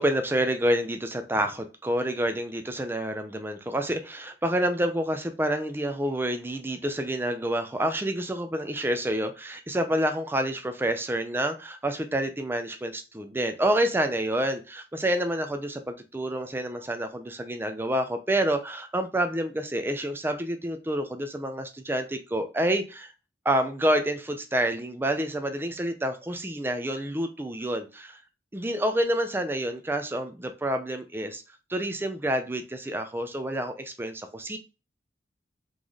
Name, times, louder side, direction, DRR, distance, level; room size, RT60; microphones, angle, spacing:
voice 1, 0.0-23.1 23.4-28.2 28.5-31.4 31.7-34.6, right 1 dB, 15° right, 6 dB, 0.5 m, -28 dB
3.7 x 3.2 x 3.9 m, 0.30 s
head